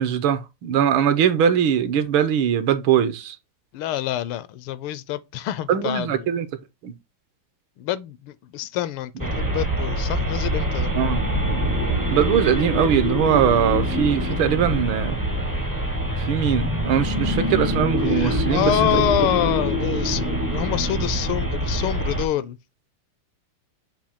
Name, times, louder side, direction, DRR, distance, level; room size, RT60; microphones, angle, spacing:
voice 1, 0.0-3.4 5.7-6.5 6.8-6.9 10.9-11.2 12.1-15.2 16.2-19.0, right 8 dB, 75° right, 1.5 m, -21 dB
voice 2, 3.7-6.3 7.8-10.9 18.1-22.6, left 12 dB, 80° left, 1.4 m, -26 dB
sound 1, 9.2-22.3, equal, 25° right, 0.4 m, -24 dB
7.2 x 2.7 x 5.5 m
omnidirectional pair, 2.4 m